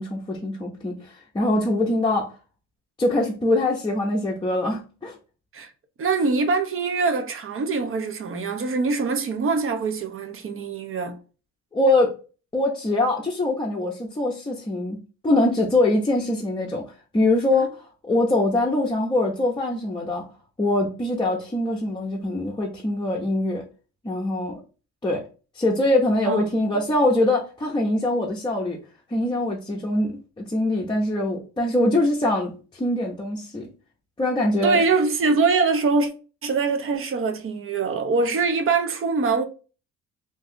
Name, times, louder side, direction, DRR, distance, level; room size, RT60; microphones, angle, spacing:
voice 1, 0.0-2.3 3.0-5.2 11.7-12.1 12.5-16.8 17.1-17.8 18.0-20.3 20.6-23.6 24.0-24.6 25.0-25.2 25.6-28.8 29.1-33.7 34.2-34.8, left 1 dB, 15° left, 0.6 m, -23 dB
voice 2, 6.0-11.2 17.5-17.7 26.2-26.4 34.6-36.1 36.4-39.4, right 4 dB, 45° right, 0.6 m, -23 dB
2.7 x 2.3 x 3.5 m
cardioid pair, 90°, 30 cm